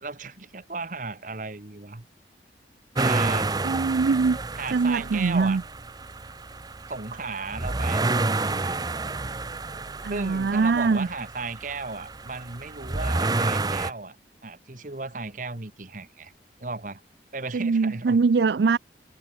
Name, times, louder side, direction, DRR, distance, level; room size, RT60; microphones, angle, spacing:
voice 1, 0.0-2.1 3.0-3.5 4.5-5.6 6.9-8.9 10.1-14.2 14.4-16.3 16.6-17.0 17.3-18.2, right 3 dB, 45° right, 1.5 m, -35 dB
sound 1, 2.9-13.9, right 2 dB, 20° right, 0.7 m, -29 dB
voice 2, 3.6-4.4 4.7-5.6 10.0-11.1 17.5-18.8, right 4 dB, 75° right, 0.5 m, -22 dB
head